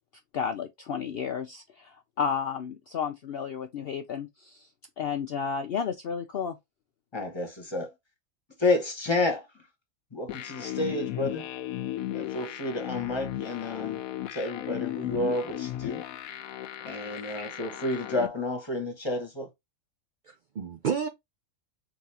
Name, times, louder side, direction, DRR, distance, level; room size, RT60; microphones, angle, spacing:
voice 1, 0.3-4.7 5.0-6.6, left 6 dB, 60° left, 0.6 m, -32 dB
voice 2, 7.1-7.9 8.6-9.5 10.1-11.5 12.1-14.0 14.3-16.0 16.8-19.5, left 2 dB, 20° left, 1.1 m, -30 dB
sound 1, 10.3-18.3, left 13 dB, 85° left, 1.0 m, -36 dB
voice 3, 17.2-17.5 20.2-21.1, right 6 dB, 65° right, 0.4 m, -32 dB
4.0 x 3.6 x 2.8 m
omnidirectional pair, 1.4 m